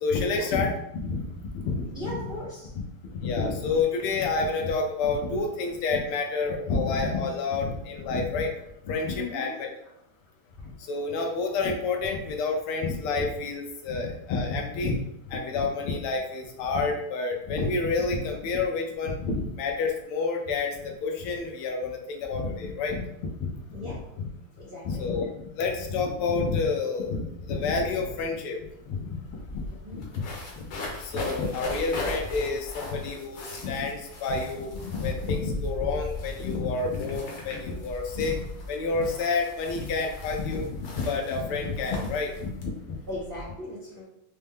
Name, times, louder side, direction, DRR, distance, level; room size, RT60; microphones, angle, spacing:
voice 1, 0.0-1.3 1.5-2.2 3.0-8.5 8.9-9.7 10.9-15.0 15.3-23.6 23.8-24.3 24.8-25.3 25.6-28.6 28.9-29.2 29.5-29.6 29.9-30.2 30.6-38.4 38.7-42.9, left 4 dB, 85° left, 2 dB, 1.6 m, -29 dB
voice 2, 1.9-2.7 9.1-9.6 23.7-24.0 24.6-25.0 29.7-30.0 43.1-44.0, left 1 dB, 50° right, -8 dB, 0.7 m, -37 dB
sound 1, 28.7-28.8 29.0-43.4, left 2 dB, 65° left, 1.4 m, -38 dB
5.5 x 2.1 x 3.5 m, 0.77 s
omnidirectional pair, 2.4 m